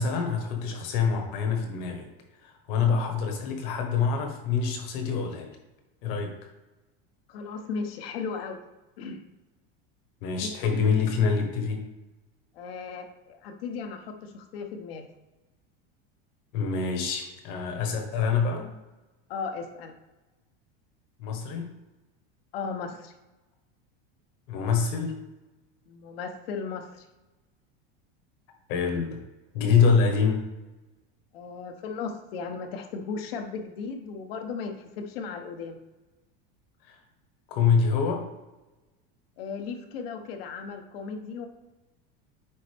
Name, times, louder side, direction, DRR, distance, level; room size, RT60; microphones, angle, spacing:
voice 1, 0.0-2.1 2.4-5.6 6.0-6.3 10.2-11.9 16.5-18.7 21.2-21.7 24.5-25.2 28.7-29.2 29.5-30.4 36.9-37.0 37.5-38.3, left 5 dB, 60° left, 3 dB, 1.4 m, -25 dB
voice 2, 7.3-8.6 9.0-9.2 10.4-10.9 12.5-15.0 19.3-19.9 22.5-23.1 25.9-27.0 31.3-35.8 39.4-41.5, left 5 dB, 80° left, 5 dB, 1.0 m, -36 dB
9.1 x 4.1 x 3.5 m, 1.1 s
supercardioid pair, 170°, 29 cm